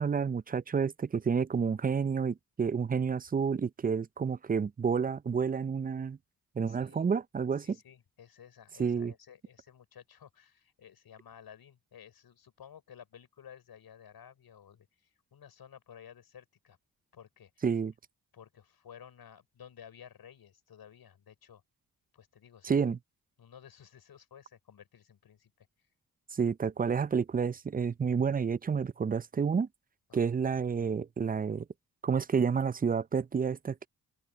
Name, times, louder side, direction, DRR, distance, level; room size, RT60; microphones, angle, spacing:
voice 1, 0.0-6.2 6.6-7.8 8.8-9.1 17.6-17.9 22.6-23.0 26.3-29.7 30.1-31.7 32.0-33.9, right 6 dB, 25° right, 0.5 m, -30 dB
voice 2, 6.7-7.0 7.6-16.8 17.1-17.6 18.3-21.6 22.1-22.8 23.4-25.7 30.1-30.3, left 8 dB, 75° left, 6.0 m, -54 dB
open air
cardioid pair, 50°, 37 cm